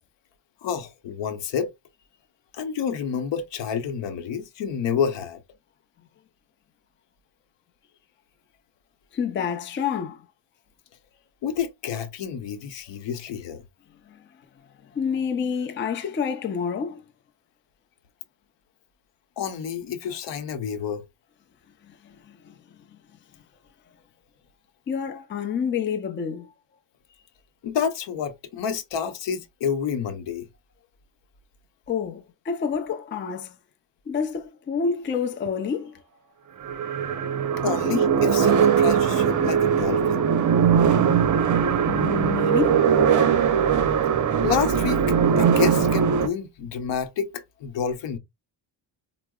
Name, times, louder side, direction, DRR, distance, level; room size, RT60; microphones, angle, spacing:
voice 1, 0.6-1.7 2.5-5.4 11.4-13.6 19.4-21.0 27.6-30.5 37.6-40.2 44.4-48.2, left 7 dB, 70° left, 0.8 m, -29 dB
voice 2, 9.1-10.3 14.1-14.3 14.8-17.0 21.8-23.0 24.9-26.5 31.9-33.6 34.1-36.0 41.9-42.9, left 6 dB, 25° left, 0.5 m, -28 dB
sound 1, 35.5-35.6 36.6-46.3, right 7 dB, 40° right, 0.6 m, -20 dB
4.5 x 2.0 x 2.2 m
cardioid pair, 100°, 45 cm